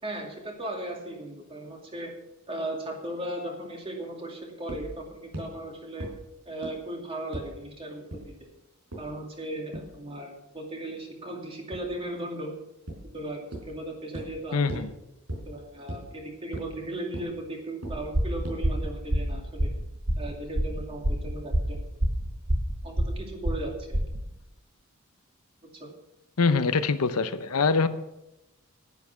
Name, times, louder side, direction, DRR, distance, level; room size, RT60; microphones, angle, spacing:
voice 1, 0.0-2.1 2.5-6.1 6.5-8.5 9.0-12.5 13.1-14.8 15.5-19.7 20.2-22.0 22.8-24.0 25.7-25.9, right 1 dB, 25° right, 1 dB, 2.5 m, -37 dB
sound 1, 4.7-4.8 5.3-5.4 6.0-6.1 6.6-6.7 7.3-7.4 8.1-8.2 8.9-9.0 9.7-9.8 11.7-11.8 12.9-13.0 13.5-13.6 14.1-14.2 14.7-14.8 15.3-15.4 15.9-16.0 16.5-16.6 17.1-17.2 17.8-17.9 18.4-18.5, right 1 dB, 75° right, 4.6 m, -34 dB
voice 2, 14.5-14.9 26.4-27.9, left 4 dB, 85° left, 11 dB, 0.8 m, -24 dB
sound 2, 17.9-24.3, right 1 dB, 50° right, 1.4 m, -27 dB
10.5 x 10.5 x 5.9 m, 0.92 s
head